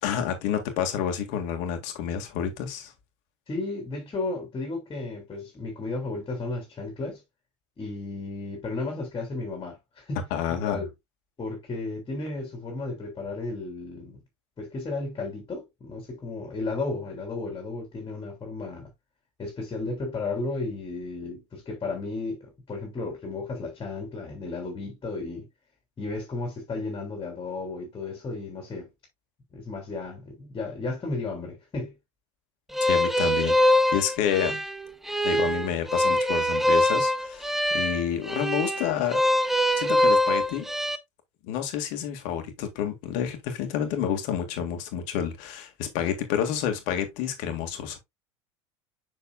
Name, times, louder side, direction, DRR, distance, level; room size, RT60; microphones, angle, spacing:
voice 1, 0.0-2.9 10.3-10.9 32.8-34.6 35.2-39.2 39.8-40.7 41.4-48.0, left 9 dB, 60° left, 1.9 m, -29 dB
voice 2, 3.5-7.2 7.8-10.3 10.6-10.9 11.4-14.2 14.6-18.9 19.4-25.5 26.0-28.9 29.5-31.9, left 3 dB, 25° left, 3.0 m, -34 dB
sound 1, 32.7-41.0, left 1 dB, ahead, 0.8 m, -24 dB
7.1 x 6.2 x 2.3 m
hypercardioid pair, 80°, 15 cm